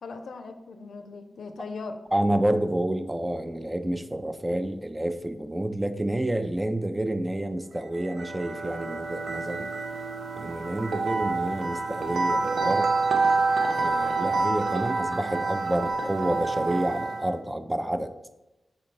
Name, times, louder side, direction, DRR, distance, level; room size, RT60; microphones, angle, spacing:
voice 1, 0.0-2.0, left 4 dB, 90° left, 7 dB, 0.4 m, -39 dB
voice 2, 2.1-9.7 10.4-12.9 13.7-18.1, right 1 dB, 15° right, 9 dB, 0.3 m, -29 dB
sound 1, 7.9-17.3, right 3 dB, 85° right, 0.4 m, -27 dB
4.0 x 3.2 x 4.1 m, 0.96 s
wide cardioid pair, 85°, 0 cm